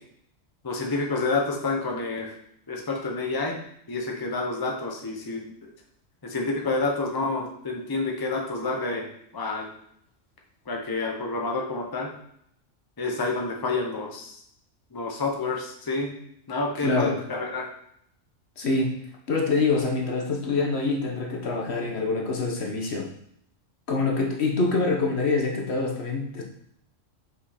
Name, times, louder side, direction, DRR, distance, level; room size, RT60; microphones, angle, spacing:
voice 1, 0.6-2.3 2.7-3.6 3.9-5.7 6.2-9.7 10.7-12.1 13.0-14.4 14.9-16.1 16.5-17.7, left 3 dB, 20° left, 0 dB, 0.9 m, -29 dB
voice 2, 16.8-17.2 18.6-19.0 19.3-23.1 23.9-26.4, left 3 dB, 60° left, 0 dB, 1.3 m, -25 dB
5.6 x 5.4 x 4.2 m, 0.70 s
omnidirectional pair, 1.3 m